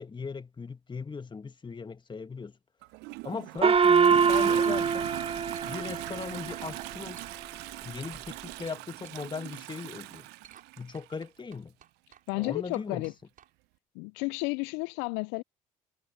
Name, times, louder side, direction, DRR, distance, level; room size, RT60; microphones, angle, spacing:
voice 1, 0.0-2.6 3.2-5.1 5.7-7.2 7.8-10.3 10.8-11.8 12.3-13.1, left 5 dB, 25° left, 1.8 m, -38 dB
Toilet flush, 2.8-11.2 12.3-12.4, right 22 dB, 70° right, 0.8 m, -41 dB
sound 1, 3.4-3.7 4.2-5.0 5.3-7.5 7.8-9.3 9.5-9.6 10.1-10.7 10.9-13.5, right 9 dB, 50° right, 6.2 m, -55 dB
Gong, 3.6-6.5, right 6 dB, 30° right, 1.0 m, -23 dB
voice 2, 12.3-13.1 14.0-15.4, left 29 dB, 70° left, 0.5 m, -32 dB
hypercardioid pair, 60°, 18 cm